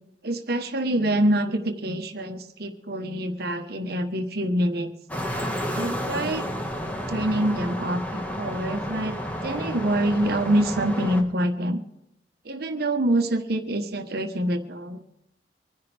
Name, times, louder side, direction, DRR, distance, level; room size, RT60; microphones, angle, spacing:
voice 1, 0.2-4.9 5.7-6.5 7.1-9.1 9.4-11.8 12.4-15.0, right 1 dB, 60° right, 7 dB, 1.2 m, -26 dB
sound 1, 5.1-11.2, equal, 10° left, 1.5 m, -31 dB
25.0 x 10.5 x 3.4 m, 0.86 s
head